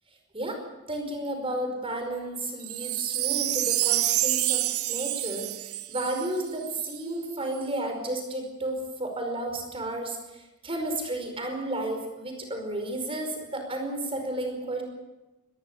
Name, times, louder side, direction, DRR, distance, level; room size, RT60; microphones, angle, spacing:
voice 1, 0.9-14.8, right 1 dB, 25° right, 4 dB, 5.2 m, -32 dB
Wind chime, 2.6-7.0 7.5-7.6, right 15 dB, 80° right, 0.8 m, -28 dB
23.5 x 20.0 x 6.8 m, 1.0 s
head